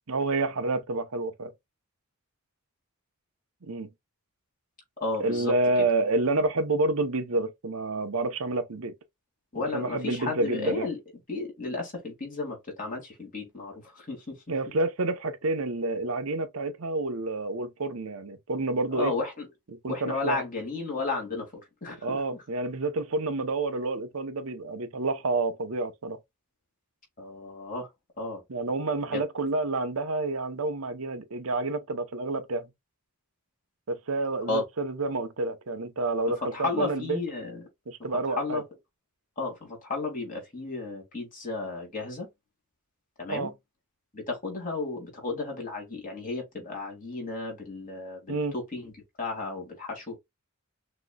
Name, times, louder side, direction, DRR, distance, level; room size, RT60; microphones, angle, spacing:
voice 1, 0.1-1.5 3.7-3.9 5.2-8.9 9.7-10.8 14.5-19.1 19.8-20.4 22.0-26.2 28.5-32.7 33.9-37.2 37.9-38.6 43.3-43.5 48.3-48.5, right 2 dB, 75° right, 0.8 m, -29 dB
voice 2, 5.0-5.9 9.5-11.0 11.3-14.4 18.9-19.5 19.9-22.2 27.2-27.9 28.2-28.4 29.1-29.2 34.5-34.6 36.5-37.7 38.2-38.6 39.4-42.3 43.2-43.5 44.1-48.9 49.2-50.2, left 3 dB, 40° left, 2.3 m, -33 dB
6.2 x 3.0 x 2.3 m
head